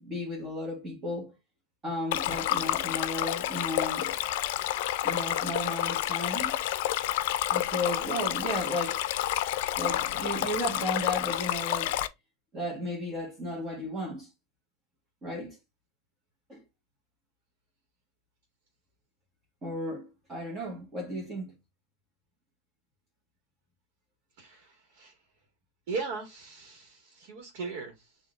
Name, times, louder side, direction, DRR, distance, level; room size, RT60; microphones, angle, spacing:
voice 1, 0.0-1.3 1.8-4.1 5.0-6.5 7.5-9.0 9.8-11.9 12.5-14.3 15.2-15.6 16.5-16.6 19.6-21.5, left 1 dB, 25° right, 1.5 m, -34 dB
Stream, 2.1-12.1, left 13 dB, 65° left, 0.5 m, -29 dB
voice 2, 24.4-25.2 25.9-28.2, right 4 dB, 60° right, 1.6 m, -38 dB
7.0 x 2.8 x 2.4 m
supercardioid pair, 140°, 0 cm